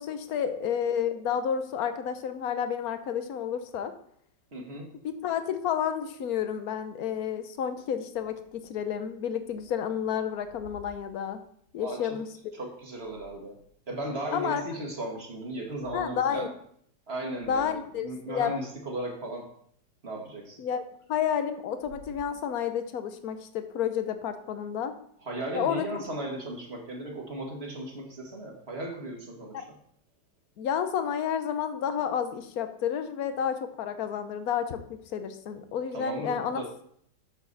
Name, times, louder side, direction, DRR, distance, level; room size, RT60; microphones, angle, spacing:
voice 1, 0.0-3.9 5.0-11.4 11.7-12.3 14.3-14.6 15.9-16.5 17.5-18.5 20.6-20.8 21.1-24.9 25.5-26.0 29.5-29.6 30.6-36.6, left 8 dB, 60° left, 9 dB, 1.2 m, -30 dB
voice 2, 4.5-4.9 11.8-12.2 12.5-13.5 13.9-16.5 17.1-19.5 20.0-20.6 25.2-29.8 35.9-36.7, right 1 dB, 35° right, 0 dB, 1.9 m, -36 dB
sound 1, 8.1-9.7 10.0-11.8 12.7-13.8 14.2-14.3 15.6-16.0 16.4-16.6 17.0-17.1 17.3-18.6 21.6-22.8, left 3 dB, 85° left, 4.7 m, -55 dB
8.6 x 7.0 x 4.0 m, 0.64 s
omnidirectional pair, 2.0 m